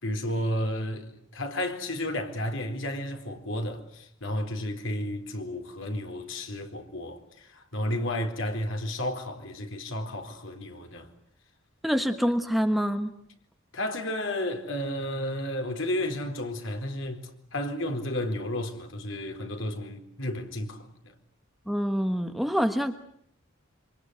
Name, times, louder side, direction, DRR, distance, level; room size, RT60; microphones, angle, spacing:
voice 1, 0.0-11.1 13.7-17.2 17.5-21.1, left 1 dB, 65° left, 4.1 m, -32 dB
voice 2, 11.8-13.1 21.7-23.0, equal, ahead, 1.3 m, -26 dB
27.0 x 26.0 x 8.2 m
head